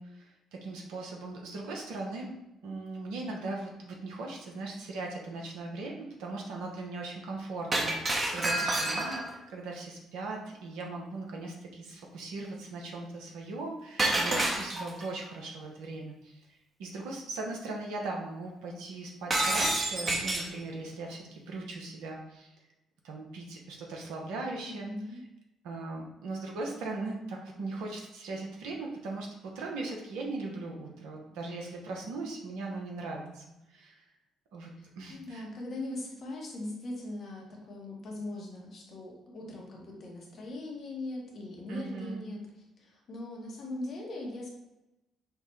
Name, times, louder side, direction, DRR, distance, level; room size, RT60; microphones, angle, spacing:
voice 1, 0.0-2.3 2.6-22.6 23.0-25.2 25.6-34.0 34.5-34.7 35.0-35.4 41.7-42.2, right 2 dB, 75° right, 0 dB, 0.7 m, -39 dB
Shatter, 7.7-9.4 14.0-15.0 19.3-20.6, right 2 dB, 40° right, 0.8 m, -28 dB
voice 2, 24.7-25.2 34.8-42.4 42.8-44.5, left 2 dB, 55° left, -1 dB, 1.1 m, -40 dB
5.6 x 2.1 x 3.1 m, 0.94 s
hypercardioid pair, 50°, 0 cm